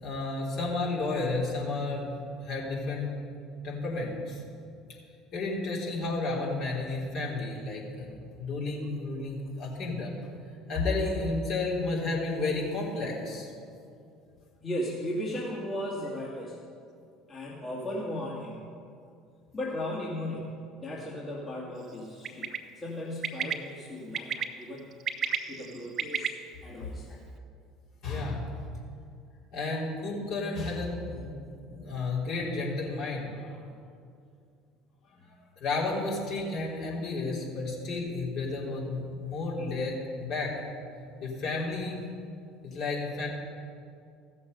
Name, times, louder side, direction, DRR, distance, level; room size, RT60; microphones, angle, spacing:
voice 1, 0.0-2.1 2.4-3.1 3.6-4.4 5.3-10.1 10.7-13.5 26.8-26.9 28.0-28.6 29.5-31.3 31.6-33.6 35.6-40.5 41.2-42.0 42.6-43.3, left 3 dB, 55° left, -4 dB, 3.4 m, -32 dB
voice 2, 14.6-16.6 17.3-18.6 19.5-22.5 22.8-24.9 25.5-26.3 26.6-27.2 35.1-35.3, left 1 dB, 30° left, -5 dB, 2.3 m, -36 dB
Bird, 22.2-22.6 23.2-23.5 24.1-24.4 24.9-26.3, right 8 dB, 45° right, 0.8 m, -30 dB
15.5 x 6.8 x 5.4 m, 2.4 s
hypercardioid pair, 70°, 0 cm